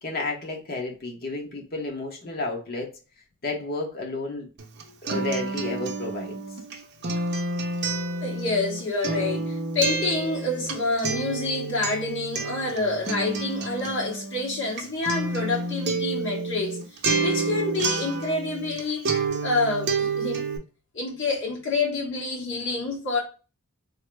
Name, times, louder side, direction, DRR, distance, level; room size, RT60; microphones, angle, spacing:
voice 1, 0.0-2.9 3.4-4.5 5.0-6.4, left 2 dB, 45° left, 1.0 m, -31 dB
Acoustic guitar, 4.6-18.8 19.0-20.6, right 3 dB, 50° right, 0.6 m, -29 dB
voice 2, 7.0-7.4 8.2-16.8 17.2-20.4 20.9-23.2, left 3 dB, 60° left, 1.6 m, -28 dB
3.6 x 2.0 x 3.3 m
head